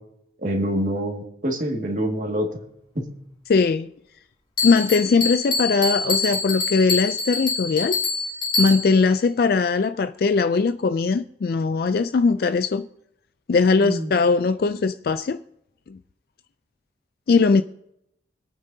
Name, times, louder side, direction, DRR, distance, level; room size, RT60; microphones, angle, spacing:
voice 1, 0.4-2.5 3.0-3.1 13.8-14.1, equal, 45° right, 2.0 m, -26 dB
voice 2, 3.5-3.9 4.6-8.0 8.6-12.9 13.5-15.4 15.9-16.0 17.3-17.6, left 4 dB, 55° left, 0.3 m, -20 dB
Bell, 4.6-9.1, left 3 dB, 25° left, 2.6 m, -26 dB
25.0 x 8.8 x 2.7 m
head